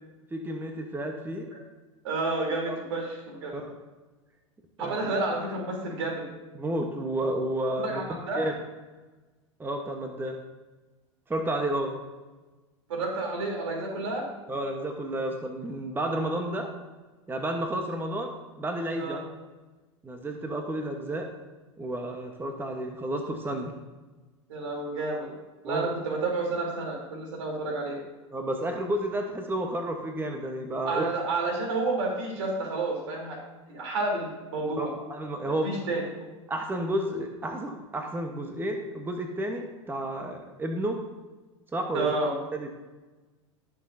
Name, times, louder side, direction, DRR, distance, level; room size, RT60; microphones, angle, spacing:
voice 1, 0.3-1.5 2.6-2.8 3.5-3.7 4.8-5.0 6.5-8.0 8.3-8.5 9.6-10.4 11.3-12.0 14.5-16.7 17.3-19.2 20.0-21.3 21.8-23.7 25.6-25.9 28.3-31.1 34.8-35.7 36.5-41.0 41.7-42.1 42.5-42.7, right 1 dB, 15° right, 4 dB, 1.1 m, -31 dB
voice 2, 2.0-3.6 4.8-6.2 7.8-8.5 12.9-14.3 19.0-19.2 24.5-25.3 25.6-28.0 30.8-33.4 33.7-34.9 35.4-36.0 41.9-42.4, right 3 dB, 70° right, 0 dB, 3.4 m, -30 dB
19.5 x 6.5 x 2.7 m, 1.2 s
figure-of-eight pair, 85°, 16 cm